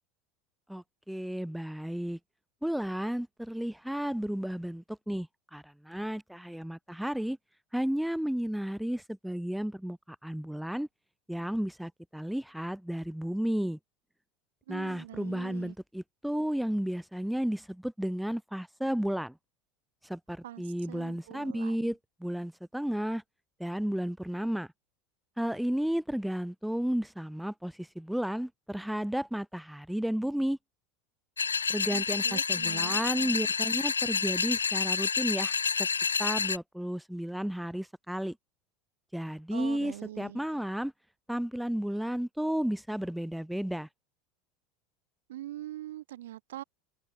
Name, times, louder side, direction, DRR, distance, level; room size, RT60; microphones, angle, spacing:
voice 1, 0.7-2.2 2.6-7.4 7.7-10.9 11.3-13.8 14.7-19.4 20.0-23.2 23.6-24.7 25.4-30.6 31.7-35.9 36.2-38.4 39.1-40.9 41.3-43.9, equal, ahead, 0.4 m, -33 dB
voice 2, 14.7-15.7 20.4-21.9 31.9-33.5 39.5-40.4 45.3-46.6, right 14 dB, 65° right, 0.6 m, -43 dB
sound 1, 31.4-36.6, left 6 dB, 75° left, 0.3 m, -29 dB
figure-of-eight pair, 75°, 0 cm